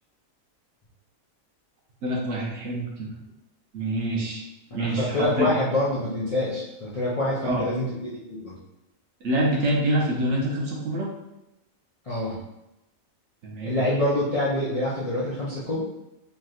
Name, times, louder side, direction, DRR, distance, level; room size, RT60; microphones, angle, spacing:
voice 1, 2.0-3.1 3.7-4.4 4.7-5.5 7.4-7.7 9.2-11.1 13.4-13.8, right 1 dB, 65° right, -2 dB, 0.9 m, -26 dB
voice 2, 4.8-8.6 12.0-12.4 13.6-15.8, left 1 dB, 50° left, -9 dB, 0.4 m, -26 dB
3.3 x 2.7 x 2.3 m, 0.92 s
omnidirectional pair, 1.4 m